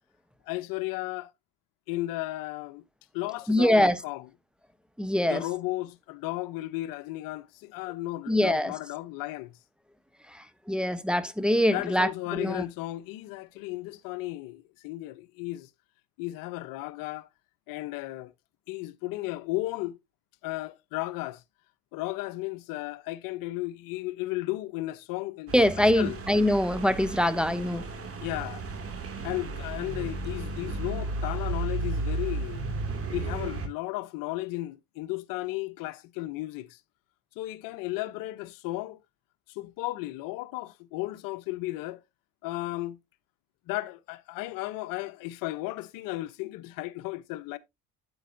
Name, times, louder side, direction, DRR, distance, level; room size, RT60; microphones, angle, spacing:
voice 1, 0.5-1.3 1.9-2.8 3.1-4.3 5.3-9.6 11.7-15.7 16.2-17.3 17.7-18.3 18.7-20.0 20.4-21.4 21.9-25.5 26.0-26.2 28.2-28.7 29.2-32.6 33.1-36.8 37.4-39.0 39.5-42.0 42.4-43.0 43.7-47.6, left 18 dB, 75° left, 0.8 m, -34 dB
voice 2, 3.5-4.0 5.0-5.4 8.3-8.7 10.3-12.6 25.5-27.8, left 1 dB, 5° right, 0.8 m, -24 dB
sound 1, 25.5-33.7, right 2 dB, 40° right, 2.3 m, -34 dB
8.6 x 8.0 x 2.6 m
supercardioid pair, 75°, 34 cm